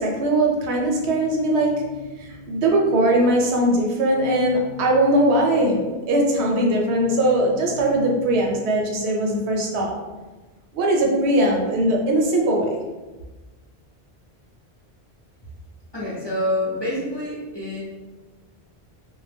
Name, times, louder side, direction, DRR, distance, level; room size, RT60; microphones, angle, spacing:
voice 1, 0.0-9.9 10.7-12.8, right 1 dB, 85° right, -1 dB, 0.8 m, -20 dB
voice 2, 15.9-17.8, left 1 dB, 30° left, -8 dB, 0.6 m, -26 dB
2.1 x 2.0 x 3.3 m, 1.2 s
omnidirectional pair, 1.1 m